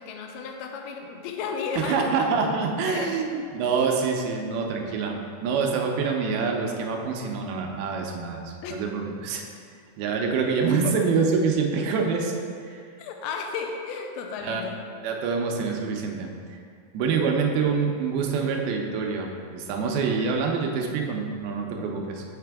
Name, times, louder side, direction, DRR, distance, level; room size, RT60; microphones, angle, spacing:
voice 1, 0.0-2.1 2.9-3.3 8.6-8.7 10.8-10.9 13.0-14.8 17.2-17.3, left 5 dB, 80° left, 3 dB, 2.4 m, -33 dB
voice 2, 1.8-5.1 5.4-9.4 10.0-12.9 14.4-14.7 15.0-16.6 16.9-22.2, right 5 dB, 80° right, 1 dB, 2.4 m, -26 dB
7.0 x 5.8 x 3.4 m, 2.2 s
omnidirectional pair, 4.6 m